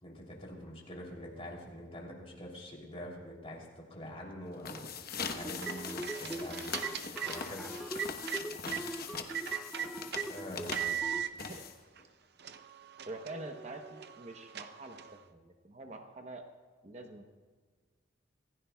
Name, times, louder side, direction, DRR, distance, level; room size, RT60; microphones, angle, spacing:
voice 1, 0.0-4.9 5.3-6.7 7.2-7.7 10.3-11.0, equal, 30° left, -1 dB, 3.1 m, -45 dB
sound 1, 4.5-12.0, left 5 dB, 50° left, 1.0 m, -42 dB
sound 2, 5.4-11.2, equal, ahead, 0.4 m, -42 dB
sound 3, 5.4-8.8 9.3-10.3 10.7-11.3 12.0-12.1 12.4-15.2, right 9 dB, 55° right, 0.6 m, -39 dB
voice 2, 13.1-16.4 16.8-17.2, right 2 dB, 35° right, 4 dB, 0.9 m, -46 dB
26.5 x 15.5 x 2.3 m, 1.5 s
head